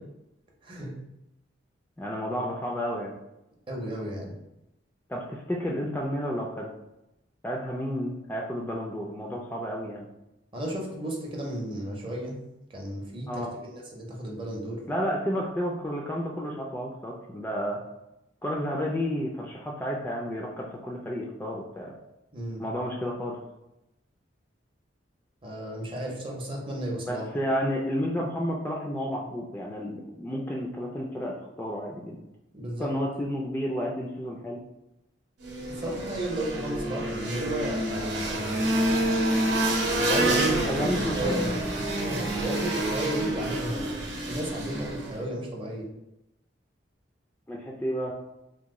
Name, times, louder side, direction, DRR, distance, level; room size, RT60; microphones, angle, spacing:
voice 1, 0.6-0.9 3.7-4.3 10.5-12.4 12.7-14.8 22.3-22.6 25.4-27.2 32.5-32.9 35.7-38.6 40.0-41.6 41.9-45.9, right 1 dB, 30° right, -1 dB, 0.6 m, -33 dB
voice 2, 2.0-3.1 5.1-6.7 7.4-10.1 13.3-13.5 14.9-17.8 18.4-21.9 22.6-23.4 27.1-32.2 32.8-34.6 40.7-41.3 47.5-48.1, equal, 10° left, -2 dB, 0.3 m, -31 dB
sound 1, 35.4-45.2, right 1 dB, 65° right, 0.7 m, -28 dB
2.9 x 2.2 x 3.5 m, 0.89 s
head